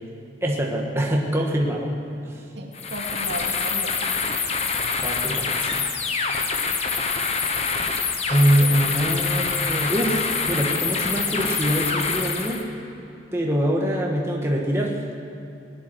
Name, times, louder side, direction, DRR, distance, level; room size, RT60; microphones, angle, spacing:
voice 1, 0.4-1.9 2.2-2.4 5.0-5.9 8.3-12.6 13.3-15.0, right 1 dB, 15° right, -2 dB, 1.5 m, -24 dB
voice 2, 2.5-4.0 8.2-8.9, right 1 dB, 75° right, 0 dB, 2.2 m, -36 dB
sound 1, 2.7-12.6, left 5 dB, 35° left, 1.1 m, -25 dB
19.5 x 11.0 x 6.3 m, 2.7 s
head